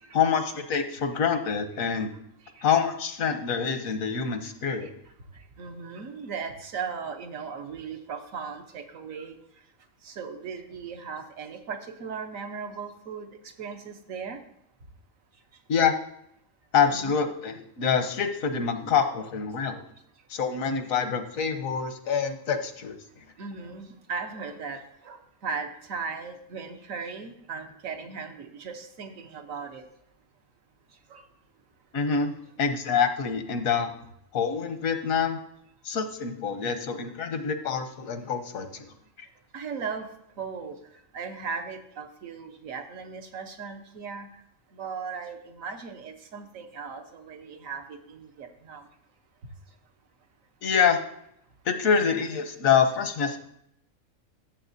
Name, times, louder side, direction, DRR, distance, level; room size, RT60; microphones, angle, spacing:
voice 1, 0.1-2.1 2.6-4.9 15.7-16.0 16.7-19.8 20.3-23.0 31.9-32.3 32.6-33.9 34.3-35.4 35.8-38.9 39.2-39.3 50.6-51.0 51.6-53.4, left 6 dB, 85° left, 8 dB, 1.3 m, -26 dB
voice 2, 4.7-5.1 5.6-9.4 10.0-13.3 13.6-14.4 16.9-17.1 17.8-17.9 23.4-29.8 31.1-31.2 32.3-32.4 39.5-40.1 40.4-40.8 41.1-44.3 44.7-48.8, right 5 dB, 80° right, 5 dB, 1.3 m, -37 dB
13.0 x 7.1 x 2.7 m, 0.75 s
omnidirectional pair, 1.4 m